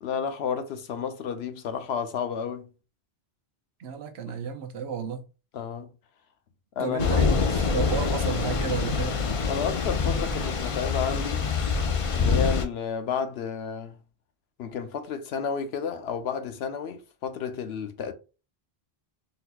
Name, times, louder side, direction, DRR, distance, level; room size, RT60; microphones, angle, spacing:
voice 1, 0.0-2.7 4.3-4.4 5.5-5.9 6.8-7.2 9.5-11.4 12.1-14.0 14.6-18.1, left 6 dB, 85° left, 0.9 m, -31 dB
voice 2, 3.8-5.2 6.8-9.2, right 6 dB, 90° right, 0.9 m, -32 dB
Thunder / Rain, 7.0-12.6, left 5 dB, 45° left, 0.4 m, -25 dB
3.9 x 2.7 x 2.2 m
omnidirectional pair, 1.0 m